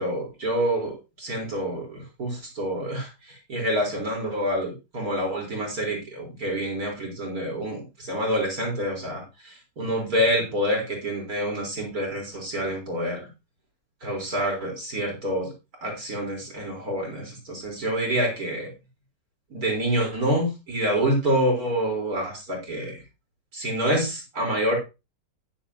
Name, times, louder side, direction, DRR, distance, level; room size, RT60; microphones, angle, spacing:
voice 1, 0.0-13.3 14.0-15.5 15.8-18.7 19.5-23.0 23.5-24.8, equal, 55° right, 0 dB, 4.3 m, -27 dB
10.5 x 10.0 x 2.8 m, 0.27 s
omnidirectional pair, 1.9 m